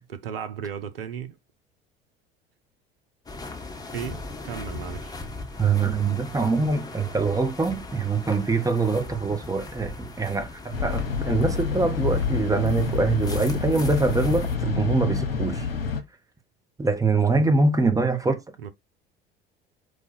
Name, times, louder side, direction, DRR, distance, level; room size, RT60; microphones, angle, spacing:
voice 1, 0.0-1.4 3.9-5.2 18.6-18.7, right 8 dB, 75° right, 0.6 m, -35 dB
sound 1, 3.3-14.6, left 2 dB, 15° left, 1.1 m, -39 dB
voice 2, 5.6-15.7 16.8-18.5, right 3 dB, 10° right, 1.0 m, -24 dB
sound 2, 10.7-16.0, left 5 dB, 75° left, 0.8 m, -27 dB
4.8 x 2.3 x 4.2 m
figure-of-eight pair, 65°, 30 cm